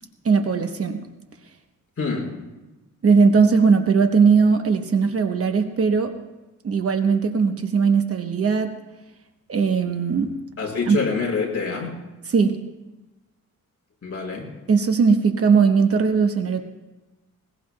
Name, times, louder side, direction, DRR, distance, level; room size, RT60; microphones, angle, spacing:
voice 1, 0.2-1.1 3.0-6.1 6.6-8.7 9.5-10.4 10.9-11.0 12.3-12.6 14.7-16.7, right 5 dB, 45° right, 5 dB, 1.0 m, -19 dB
voice 2, 2.0-2.3 10.6-12.0 14.0-14.5, left 4 dB, 45° left, -3 dB, 3.8 m, -26 dB
21.0 x 19.0 x 2.2 m, 1.1 s
wide cardioid pair, 155°, 31 cm